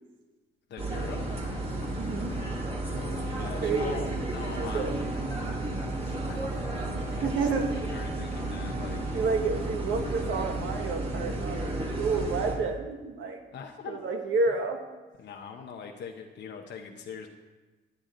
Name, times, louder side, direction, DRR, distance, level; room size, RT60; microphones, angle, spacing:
voice 1, 0.7-1.4 2.9-5.3 6.0-9.2 12.2-12.5 13.5-14.0 14.5-14.6 15.2-17.3, left 6 dB, 65° left, 2 dB, 0.9 m, -43 dB
sound 1, 0.8-12.5, right 2 dB, 30° right, 2.2 m, -32 dB
voice 2, 2.0-2.3 3.3-4.2 4.6-5.0 7.2-7.9 9.1-13.4 13.9-14.8, right 4 dB, 75° right, 3 dB, 1.7 m, -30 dB
10.5 x 10.0 x 3.8 m, 1.2 s
cardioid pair, 90°, 20 cm